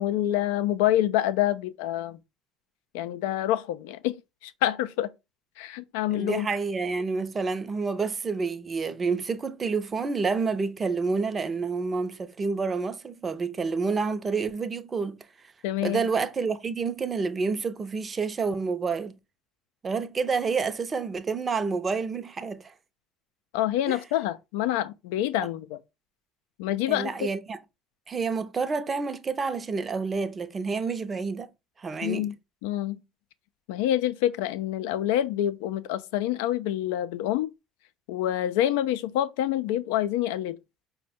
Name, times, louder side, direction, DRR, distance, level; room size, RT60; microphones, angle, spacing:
voice 1, 0.0-2.2 2.9-5.1 5.6-6.5 15.6-16.0 23.5-25.8 26.6-27.3 32.0-32.3 32.6-33.0 33.7-37.5 38.1-40.6, left 12 dB, 75° left, 0.4 m, -27 dB
voice 2, 6.1-15.2 15.8-19.2 19.8-22.7 23.9-24.0 26.9-27.6 28.1-31.5 31.8-32.3, right 4 dB, 30° right, 0.6 m, -29 dB
5.1 x 2.2 x 4.2 m
hypercardioid pair, 60°, 0 cm